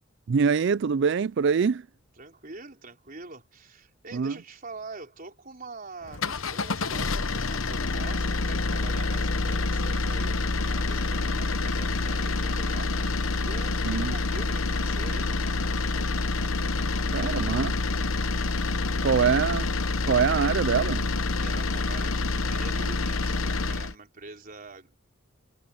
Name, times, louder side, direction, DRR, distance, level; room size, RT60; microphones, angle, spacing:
voice 1, 0.3-1.9 4.1-4.4 13.9-14.1 17.1-17.7 19.0-19.7 20.0-21.1, right 6 dB, 60° right, 0.4 m, -24 dB
voice 2, 2.2-15.3 17.2-17.5 21.4-25.1, right 3 dB, 45° right, 4.5 m, -44 dB
sound 1, 6.1-23.9, left 3 dB, 80° left, 1.1 m, -27 dB
head